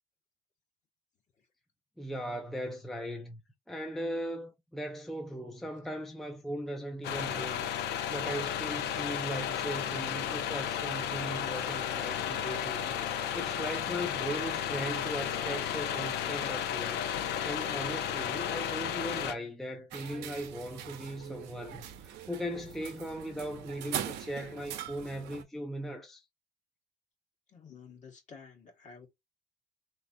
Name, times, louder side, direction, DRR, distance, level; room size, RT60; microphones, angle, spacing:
voice 1, 2.0-3.4 3.7-7.7 8.1-26.2, equal, ahead, 0.5 m, -38 dB
sound 1, 7.0-19.3, left 9 dB, 80° left, 0.6 m, -33 dB
sound 2, 19.9-25.4, right 10 dB, 85° right, 0.7 m, -42 dB
voice 2, 27.5-29.1, left 5 dB, 45° left, 1.6 m, -52 dB
3.6 x 3.1 x 2.6 m
cardioid pair, 110°, 17 cm